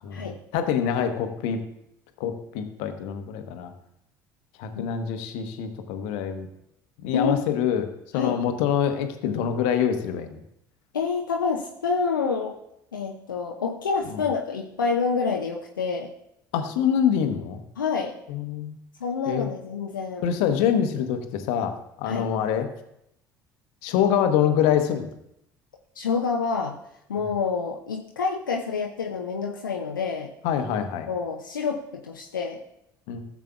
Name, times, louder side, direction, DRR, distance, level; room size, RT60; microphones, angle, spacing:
voice 1, 0.0-1.6 2.2-3.7 4.6-6.5 7.0-7.9 8.1-10.4 14.1-14.2 16.5-17.6 18.3-18.7 19.3-19.5 20.2-22.7 23.8-25.1 30.4-31.1 33.1-33.2, left 8 dB, 60° left, 7 dB, 1.1 m, -25 dB
voice 2, 10.9-12.6 12.9-16.1 17.8-18.1 19.0-20.2 22.1-22.3 26.0-26.8 27.1-30.3 31.1-32.6, left 5 dB, 80° left, 0 dB, 0.7 m, -27 dB
15.5 x 7.3 x 2.4 m, 0.78 s
figure-of-eight pair, 60°, 11 cm